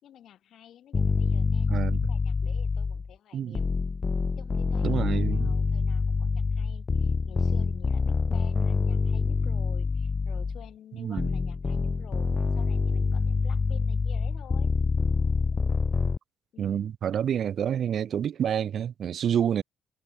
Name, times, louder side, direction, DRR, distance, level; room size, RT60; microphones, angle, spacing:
voice 1, 0.0-3.7 4.4-14.7 16.5-16.9, left 10 dB, 60° left, 5.3 m, -51 dB
sound 1, 0.9-3.1 3.6-10.7 11.2-16.2, left 4 dB, 25° left, 0.4 m, -26 dB
voice 2, 1.7-2.0 3.3-3.6 4.8-5.5 11.0-11.3 16.6-19.6, right 9 dB, 50° right, 1.5 m, -28 dB
cardioid pair, 115°, 0 cm